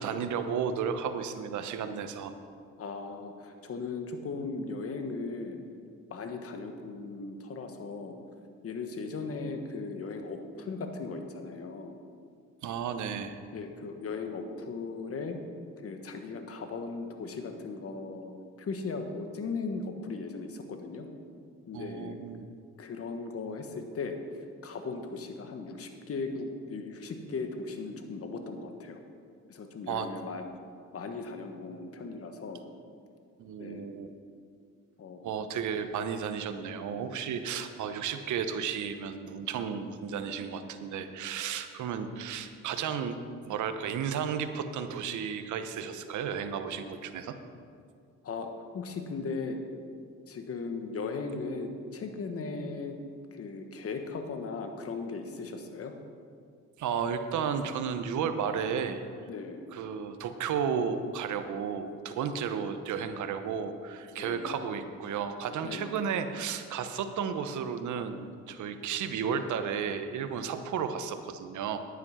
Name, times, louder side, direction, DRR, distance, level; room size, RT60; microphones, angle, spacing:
voice 1, 0.0-2.3 12.6-13.4 21.7-22.5 29.9-30.1 33.4-34.1 35.2-43.2 43.5-47.4 56.8-59.0 59.7-71.8, right 7 dB, 75° right, 9 dB, 1.0 m, -33 dB
voice 2, 2.8-5.6 6.1-8.2 8.6-12.0 13.5-15.4 15.8-18.3 18.6-21.1 21.7-22.2 22.8-24.2 24.6-29.0 29.5-30.4 30.9-32.6 33.6-33.9 35.0-35.2 48.2-49.6 50.3-53.0 53.3-55.9 59.3-59.7 64.1-64.7 65.6-65.9, left 4 dB, 50° left, 5 dB, 1.4 m, -37 dB
10.5 x 9.4 x 5.7 m, 2.3 s
cardioid pair, 90°, 30 cm